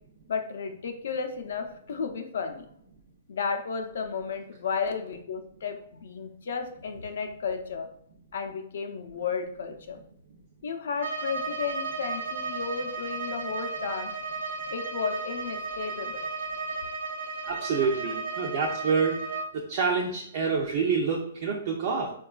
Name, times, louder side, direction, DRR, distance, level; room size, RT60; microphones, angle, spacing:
voice 1, 0.3-2.6 3.3-7.9 8.3-10.0 10.6-14.1 14.7-16.2 17.8-18.1, left 5 dB, 70° left, 6 dB, 0.4 m, -33 dB
Bowed string instrument, 10.9-19.5, right 3 dB, 80° right, 0.7 m, -34 dB
voice 2, 17.4-19.2 19.7-22.1, right 5 dB, 45° right, -1 dB, 0.4 m, -27 dB
3.7 x 2.3 x 2.3 m, 0.68 s
hypercardioid pair, 165°, 0 cm